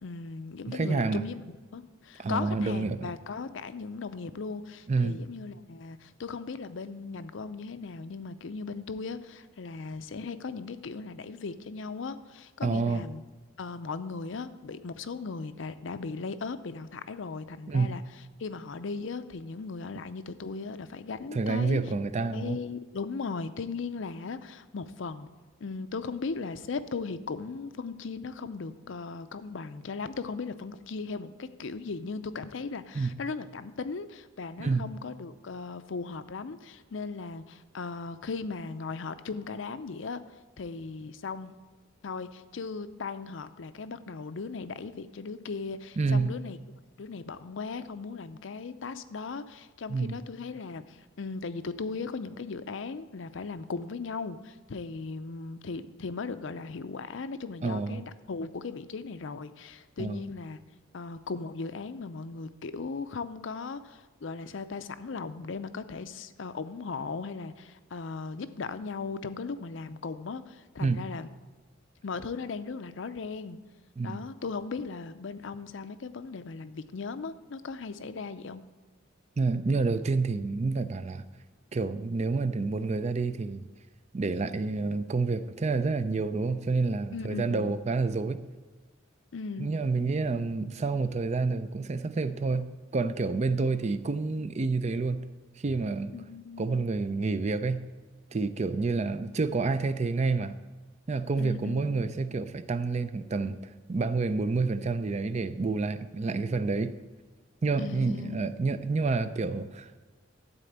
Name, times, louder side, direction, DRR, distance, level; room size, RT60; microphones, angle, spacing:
voice 1, 0.0-13.2 13.6-18.0 18.4-21.8 22.3-25.3 25.6-40.2 40.6-41.5 42.0-46.6 47.0-60.6 60.9-71.3 72.0-73.6 74.0-78.6 87.1-87.8 89.3-89.7 96.1-96.9 101.4-102.0 107.8-108.5, left 4 dB, 70° left, 12 dB, 0.5 m, -37 dB
voice 2, 0.7-1.2 2.2-3.1 4.9-5.2 12.6-13.0 17.7-17.9 21.3-22.6 32.9-33.1 34.6-34.8 46.0-46.3 49.9-50.2 57.6-58.0 60.0-60.2 70.8-71.0 74.0-74.2 79.4-81.2 81.7-83.7 84.1-88.4 89.6-95.2 95.6-96.1 96.6-97.8 98.3-100.6 101.1-103.6 103.9-107.0 107.6-110.0, right 3 dB, 35° right, 12 dB, 0.4 m, -28 dB
12.5 x 4.2 x 8.0 m, 1.3 s
head